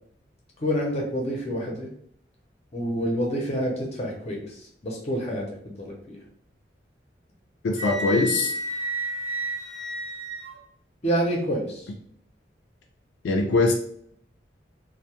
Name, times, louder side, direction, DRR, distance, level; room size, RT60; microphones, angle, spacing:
voice 1, 0.6-1.9 2.7-4.4 4.8-6.2 11.0-11.8, equal, 35° left, -1 dB, 0.5 m, -27 dB
voice 2, 7.6-8.5 13.2-13.7, left 3 dB, 85° left, 2 dB, 0.3 m, -22 dB
Wind instrument woodwind instrument, 7.8-10.6, equal, 65° right, 0.8 m, -31 dB
2.1 x 2.0 x 2.8 m, 0.66 s
head